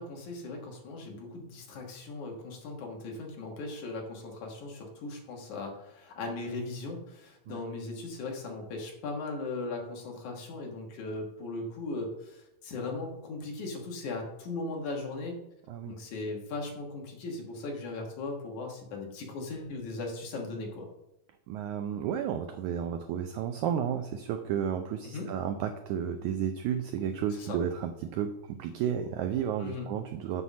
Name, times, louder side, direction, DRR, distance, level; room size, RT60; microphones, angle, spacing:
voice 1, 0.0-15.4 15.9-20.9 25.0-25.3 27.3-27.6 29.6-29.9, left 3 dB, 65° left, 1 dB, 2.7 m, -38 dB
voice 2, 21.5-30.4, right 9 dB, 85° right, 7 dB, 1.7 m, -32 dB
7.8 x 5.6 x 7.2 m, 0.88 s
omnidirectional pair, 4.1 m